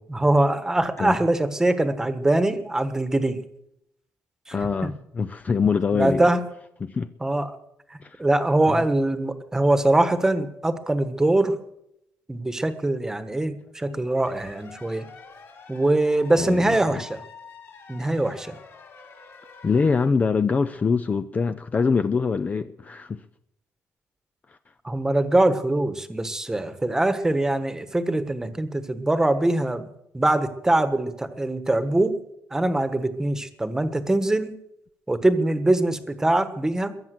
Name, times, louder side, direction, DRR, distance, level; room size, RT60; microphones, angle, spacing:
voice 1, 0.0-3.4 4.5-4.6 4.8-4.9 5.9-6.4 7.2-7.6 8.2-11.6 12.3-15.1 15.7-17.2 17.9-18.6 24.8-29.9 30.1-32.2 32.5-34.5 35.1-36.9, right 2 dB, 10° right, 1.3 m, -23 dB
voice 2, 4.5-6.3 6.8-7.1 8.0-8.2 8.7-8.8 13.9-14.2 16.3-17.0 19.6-23.2 24.5-24.6, left 5 dB, 25° left, 0.5 m, -24 dB
sound 1, 14.2-20.1, left 5 dB, 50° left, 4.0 m, -46 dB
22.0 x 7.3 x 7.7 m
cardioid pair, 145°, 5 cm